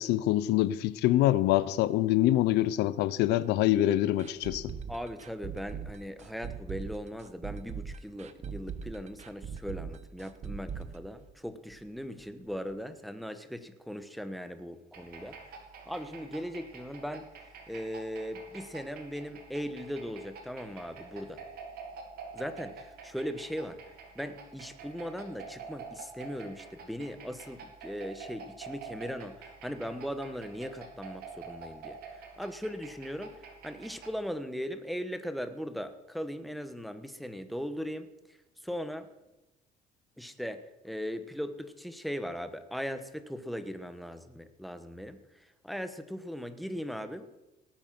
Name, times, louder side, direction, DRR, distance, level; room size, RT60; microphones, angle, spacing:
voice 1, 0.0-4.7, left 14 dB, 90° left, 17 dB, 0.7 m, -25 dB
sound 1, 4.2-11.9 12.2-12.3 12.7-12.8, right 7 dB, 40° right, 1.1 m, -41 dB
voice 2, 4.9-15.4 15.9-17.3 17.7-21.4 22.3-23.8 24.1-33.4 33.6-38.1 38.6-39.1 40.2-47.3, equal, ahead, 10 dB, 1.2 m, -39 dB
sound 2, 14.9-34.2, right 5 dB, 65° right, 2.8 m, -48 dB
17.5 x 8.9 x 6.0 m, 1.0 s
cardioid pair, 110°, 17 cm